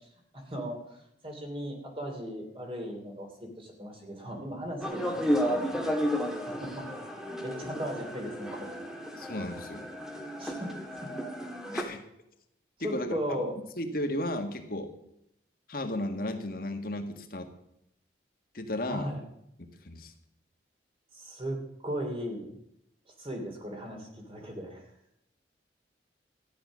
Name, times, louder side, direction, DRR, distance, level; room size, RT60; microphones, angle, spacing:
voice 1, 0.3-5.7 6.4-6.9 7.2-8.7 10.4-10.7 11.0-11.1 11.6-11.8 12.8-13.5 18.9-19.2 21.1-22.5 23.2-24.8, equal, 30° right, 2 dB, 3.1 m, -37 dB
sound 1, 4.8-11.8, equal, 5° right, 1.6 m, -33 dB
voice 2, 9.2-9.8 11.7-12.0 12.8-13.4 13.8-14.9 15.7-17.5 18.5-19.1 19.6-20.1, left 1 dB, 55° left, 5 dB, 1.6 m, -34 dB
14.0 x 10.0 x 6.3 m, 0.78 s
head